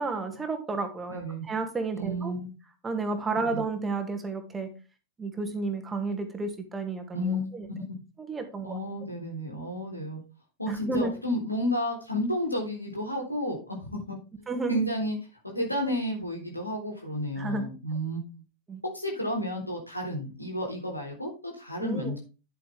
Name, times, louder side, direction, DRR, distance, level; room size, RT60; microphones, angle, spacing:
voice 1, 0.0-2.3 2.8-4.7 5.2-7.7 8.2-8.8 10.7-11.1 14.5-14.8 17.4-17.7 18.7-18.8 21.8-22.1, right 3 dB, 15° right, 6 dB, 2.1 m, -32 dB
voice 2, 1.1-1.4 1.9-2.5 3.4-3.6 7.1-7.5 8.6-10.2 10.6-14.2 14.7-15.2 15.4-18.2 18.9-22.2, equal, 85° left, 1 dB, 3.7 m, -31 dB
10.5 x 8.6 x 3.5 m, 0.30 s
figure-of-eight pair, 90°, 0 cm